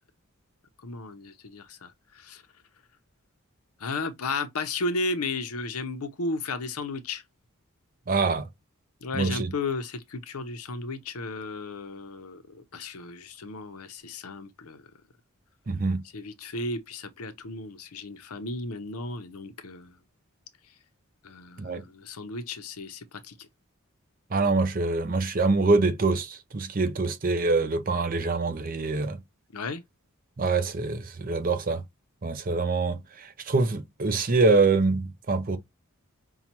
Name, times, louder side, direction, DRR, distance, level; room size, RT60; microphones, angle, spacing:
voice 1, 0.8-2.4 3.8-7.2 9.0-14.9 16.1-20.0 21.2-23.3 29.5-29.8, left 3 dB, 85° left, 0.7 m, -34 dB
voice 2, 8.1-8.4 9.1-9.5 15.7-16.0 21.6-21.8 24.3-29.2 30.4-31.8 32.2-35.6, right 3 dB, 40° right, 0.6 m, -25 dB
5.5 x 2.3 x 2.8 m
head